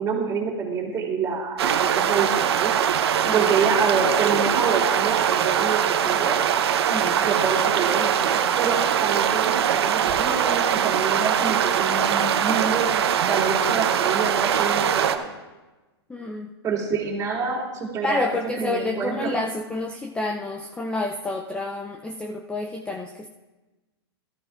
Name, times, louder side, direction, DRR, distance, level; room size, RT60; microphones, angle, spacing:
voice 1, 0.0-2.7 3.3-6.4 7.2-15.3 16.6-19.4, right 5 dB, 25° right, -2 dB, 3.0 m, -27 dB
sound 1, 1.6-15.2, right 9 dB, 70° right, 0.8 m, -22 dB
voice 2, 6.9-7.3 16.1-16.5 18.0-23.3, left 2 dB, 10° left, 3 dB, 0.5 m, -29 dB
17.0 x 13.5 x 2.5 m, 1.1 s
hypercardioid pair, 125°, 14 cm